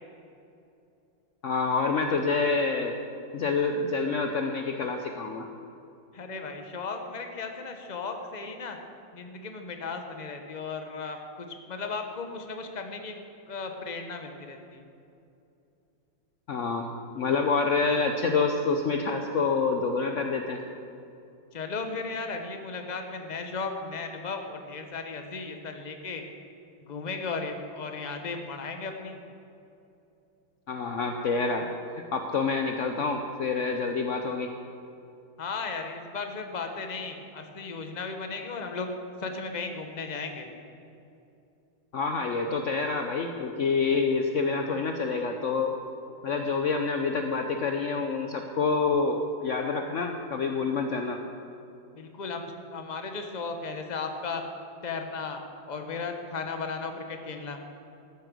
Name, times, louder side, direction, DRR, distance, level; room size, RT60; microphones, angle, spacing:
voice 1, 1.4-2.9 3.3-5.5 16.5-16.9 17.2-20.6 30.7-31.7 32.0-34.5 41.9-45.8 46.2-51.2, left 4 dB, 75° left, 4 dB, 0.7 m, -27 dB
voice 2, 6.1-8.8 9.1-11.2 11.5-13.2 13.5-14.8 21.5-26.2 26.9-29.2 35.4-38.9 39.2-40.5 51.9-54.4 54.8-57.6, left 4 dB, 35° left, 5 dB, 0.8 m, -35 dB
13.5 x 10.0 x 6.3 m, 2.7 s
omnidirectional pair, 2.2 m